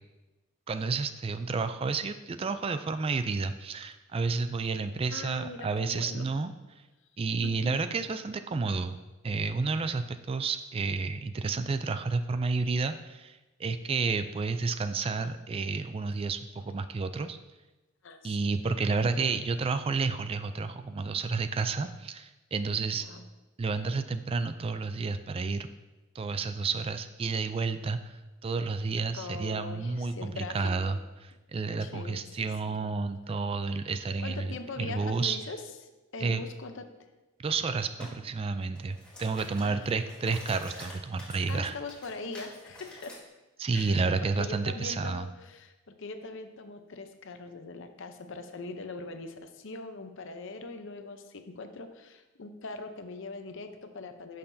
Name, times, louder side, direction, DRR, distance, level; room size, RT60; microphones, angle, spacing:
voice 1, 0.7-6.5 7.2-9.0 9.2-17.4 18.2-23.1 23.6-25.7 26.1-31.0 31.5-35.4 36.2-36.4 37.4-41.8 43.6-45.3, right 4 dB, 25° right, 10 dB, 0.3 m, -31 dB
voice 2, 5.1-6.3 7.4-7.8 18.0-18.4 22.9-23.2 29.1-30.9 31.8-32.9 34.2-35.6 36.1-36.8 39.6-40.1 41.5-43.2 43.7-44.1 44.4-45.7 46.0-54.4, left 3 dB, 60° left, 7 dB, 0.7 m, -41 dB
sound 1, 38.0-38.2 38.6-43.2, left 1 dB, 5° left, 1.9 m, -48 dB
11.0 x 6.5 x 2.7 m, 1.1 s
head